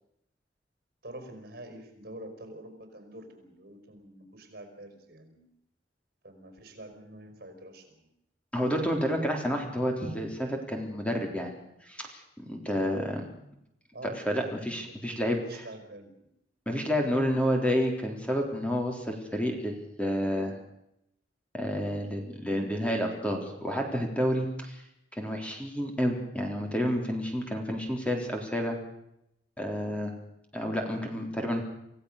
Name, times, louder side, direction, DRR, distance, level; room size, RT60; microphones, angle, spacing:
voice 1, 1.0-5.4 6.2-8.1 13.9-14.6 14.9-16.3, right 1 dB, 60° right, 7 dB, 5.3 m, -47 dB
voice 2, 8.5-11.5 11.9-13.2 14.3-15.7 16.7-20.6 21.5-24.8 25.2-28.8 29.6-30.1 30.5-31.6, equal, 5° left, 2 dB, 3.8 m, -30 dB
27.0 x 16.5 x 6.7 m, 0.79 s
head